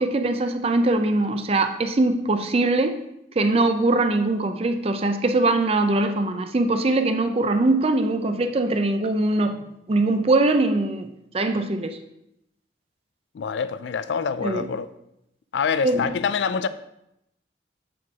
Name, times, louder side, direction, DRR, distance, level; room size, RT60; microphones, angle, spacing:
voice 1, 0.0-3.0 3.4-9.6 9.9-12.0 14.4-14.7 15.8-16.1, right 2 dB, 35° right, 0.4 m, -22 dB
voice 2, 13.3-14.9 15.5-16.7, left 6 dB, 80° left, 0.4 m, -25 dB
7.8 x 4.6 x 3.5 m
head